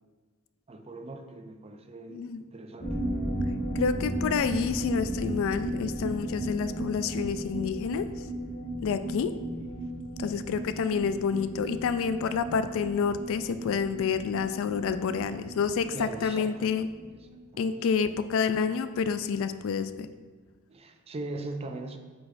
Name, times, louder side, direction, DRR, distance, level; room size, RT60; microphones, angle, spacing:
voice 1, 0.7-3.0 15.9-17.2 17.5-17.9 20.7-22.0, right 2 dB, 30° right, 5 dB, 0.4 m, -41 dB
voice 2, 2.1-2.4 3.7-8.1 8.8-9.3 10.2-16.9 17.6-19.9, left 6 dB, 65° left, 11 dB, 0.3 m, -28 dB
sound 1, 2.8-18.2 18.4-18.5 18.9-19.0, right 1 dB, 45° left, 1.1 m, -35 dB
8.4 x 4.6 x 2.5 m, 1.4 s
head